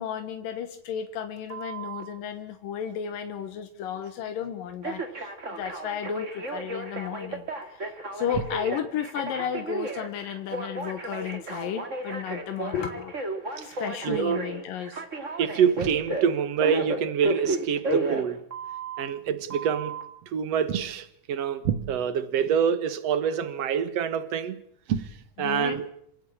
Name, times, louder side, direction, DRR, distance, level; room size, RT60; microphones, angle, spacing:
voice 1, 0.0-13.1 13.6-15.0 25.4-25.8, left 9 dB, 85° left, 3.0 m, -33 dB
Telephone, 1.5-2.0 4.8-19.0 19.5-20.0, right 2 dB, 25° right, 2.3 m, -33 dB
voice 2, 13.6-14.4 15.4-18.4 19.0-20.0 20.3-24.6 24.9-25.1 25.4-25.9, right 8 dB, 55° right, 2.5 m, -26 dB
27.5 x 16.5 x 8.8 m
omnidirectional pair, 3.8 m